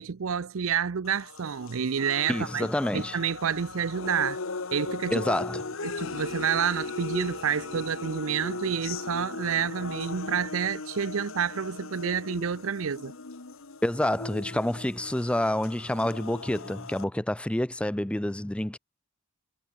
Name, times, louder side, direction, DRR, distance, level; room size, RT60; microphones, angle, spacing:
voice 1, 0.0-2.7 2.9-4.4 4.7-5.3 5.8-13.1, right 7 dB, 70° right, 0.6 m, -29 dB
sound 1, 1.0-17.0, left 3 dB, 65° left, 1.2 m, -38 dB
voice 2, 2.3-3.2 5.1-5.6 13.8-18.8, left 1 dB, 5° left, 0.3 m, -28 dB
head